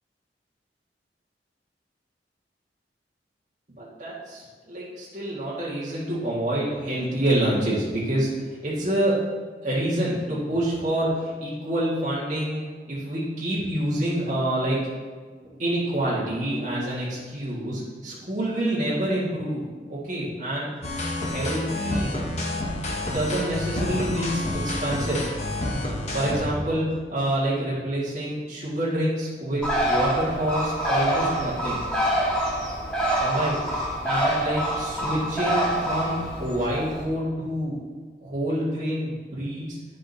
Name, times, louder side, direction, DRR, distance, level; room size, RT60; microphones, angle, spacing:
voice 1, 3.7-8.3 8.6-9.2 9.6-14.8 15.6-19.6 19.9-20.7 21.0-22.1 23.0-25.2 26.1-31.8 33.2-33.6 34.0-37.8 38.2-39.7, right 1 dB, 45° right, -8 dB, 1.8 m, -27 dB
sound 1, 20.8-26.5, left 1 dB, 40° left, 1.0 m, -29 dB
Bird, 29.6-37.0, right 1 dB, 5° left, 1.6 m, -26 dB
9.8 x 7.5 x 2.7 m, 1.5 s
head